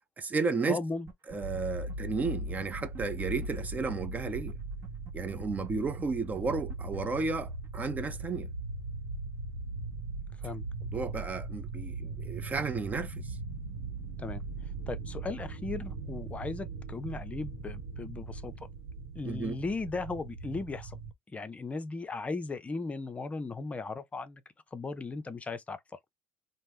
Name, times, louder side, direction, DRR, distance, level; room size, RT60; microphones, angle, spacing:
voice 1, 0.2-0.8 1.3-4.6 5.1-8.5 10.4-10.5 10.9-13.4 19.2-19.6, right 4 dB, 25° right, 0.5 m, -33 dB
voice 2, 0.7-1.1 10.4-10.6 14.2-14.4 14.9-18.5 19.2-21.0 21.3-24.4 24.7-25.8, left 3 dB, 20° left, 0.5 m, -37 dB
sound 1, 1.1-1.6 1.9-2.0 2.2-2.3 2.6-4.2 4.5-4.6 4.8-7.8, right 4 dB, 45° right, 1.0 m, -47 dB
sound 2, 1.4-21.1, right 2 dB, 70° right, 0.9 m, -39 dB
2.9 x 2.0 x 3.4 m
supercardioid pair, 90°, 6 cm